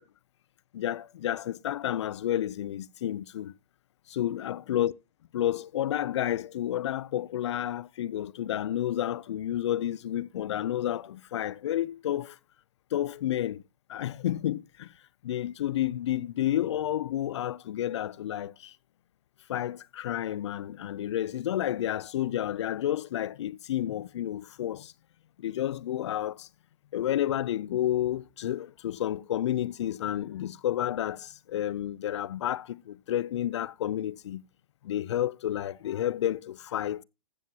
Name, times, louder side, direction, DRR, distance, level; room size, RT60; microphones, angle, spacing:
voice 1, 0.7-3.5 4.1-4.9 5.3-12.4 12.9-13.6 13.9-14.9 15.2-18.8 19.5-24.9 25.4-26.5 26.9-34.4 34.8-37.0, left 12 dB, 55° left, 0.6 m, -30 dB
15.0 x 7.8 x 2.8 m
hypercardioid pair, 150°, 18 cm